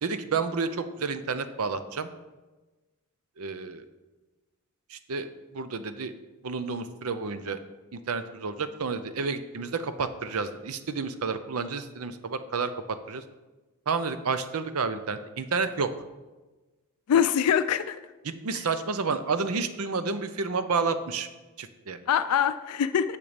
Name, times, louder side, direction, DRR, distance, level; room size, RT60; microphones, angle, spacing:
voice 1, 0.0-2.1 3.4-3.8 4.9-5.3 5.5-6.1 6.4-7.6 7.9-13.2 13.9-15.9 18.2-21.3 21.6-22.0, right 4 dB, 75° right, 11 dB, 0.6 m, -30 dB
voice 2, 17.1-18.0 22.1-23.2, left 8 dB, 85° left, 11 dB, 0.4 m, -23 dB
7.0 x 6.7 x 5.1 m, 1.2 s
head